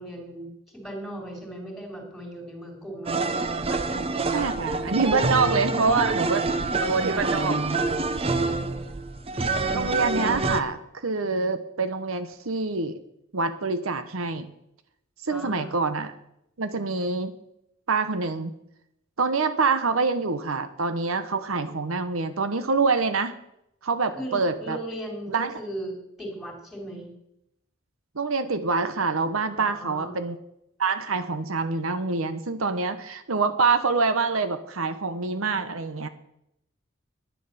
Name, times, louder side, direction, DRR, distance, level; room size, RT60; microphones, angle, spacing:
voice 1, 0.0-3.1 3.7-4.1 5.5-5.7 7.9-8.9 15.3-15.8 24.2-27.1 29.6-30.2, right 1 dB, ahead, 1 dB, 3.6 m, -38 dB
sound 1, 3.1-10.6, right 3 dB, 30° right, 0.7 m, -26 dB
voice 2, 4.3-6.4 6.8-8.3 9.7-13.0 13.3-14.5 15.2-16.1 16.6-17.3 17.9-18.6 19.2-23.3 23.8-24.8 25.3-25.5 28.1-30.4 30.8-36.1, right 4 dB, 80° right, 10 dB, 1.0 m, -26 dB
10.5 x 10.5 x 6.8 m, 0.78 s
head